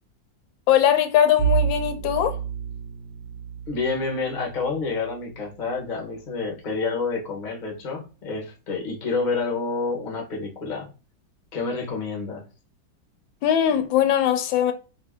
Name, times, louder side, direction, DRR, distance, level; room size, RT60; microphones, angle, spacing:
voice 1, 0.7-2.4 13.4-14.7, left 10 dB, 85° left, 1.3 m, -20 dB
Bowed string instrument, 1.4-6.5, right 8 dB, 70° right, 1.1 m, -30 dB
voice 2, 3.7-10.9 11.5-12.4, left 4 dB, 35° left, 0.8 m, -28 dB
2.8 x 2.7 x 3.4 m
omnidirectional pair, 2.1 m